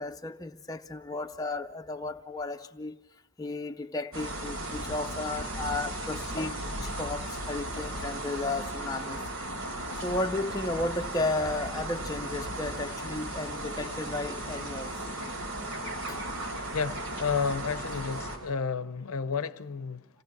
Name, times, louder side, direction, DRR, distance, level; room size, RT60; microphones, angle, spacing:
voice 1, 0.0-2.9 3.4-9.2 10.0-14.9 16.1-16.2, left 2 dB, 15° left, 0.6 m, -34 dB
sound 1, 4.1-18.4, right 1 dB, 90° right, 4.4 m, -36 dB
voice 2, 16.7-20.1, left 5 dB, 85° left, 0.6 m, -31 dB
26.5 x 17.0 x 6.0 m
head